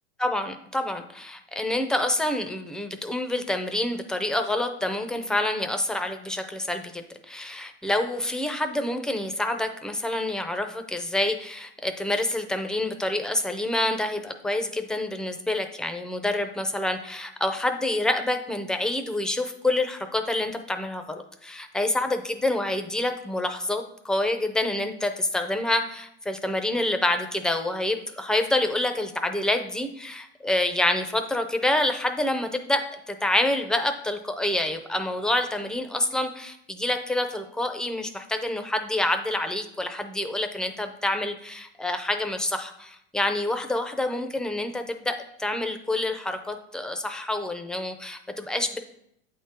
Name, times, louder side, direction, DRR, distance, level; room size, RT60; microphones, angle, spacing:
voice 1, 0.2-48.8, left 1 dB, ahead, 7 dB, 0.4 m, -27 dB
8.3 x 3.7 x 4.3 m, 0.74 s
supercardioid pair, 120°, 32 cm